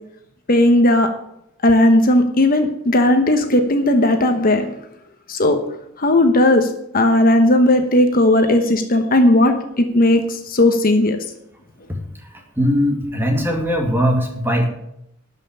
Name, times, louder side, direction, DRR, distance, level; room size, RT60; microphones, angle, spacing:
voice 1, 0.5-1.1 1.6-4.7 5.3-5.6 6.0-6.7 6.9-11.2, left 1 dB, 45° left, 6 dB, 1.1 m, -15 dB
voice 2, 12.6-14.7, equal, 10° right, 2 dB, 2.2 m, -19 dB
12.5 x 5.5 x 8.8 m, 0.77 s
head